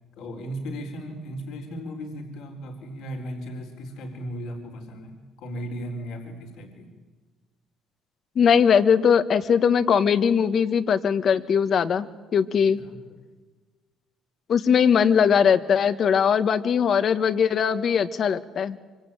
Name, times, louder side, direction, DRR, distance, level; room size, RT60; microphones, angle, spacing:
voice 1, 0.2-6.9 12.6-13.0, equal, 75° left, 1 dB, 4.1 m, -36 dB
voice 2, 8.3-12.1 12.3-12.8 14.5-18.8, left 7 dB, 50° left, 12 dB, 1.4 m, -20 dB
25.5 x 25.0 x 9.0 m, 1.3 s
cardioid pair, 95°, 0 cm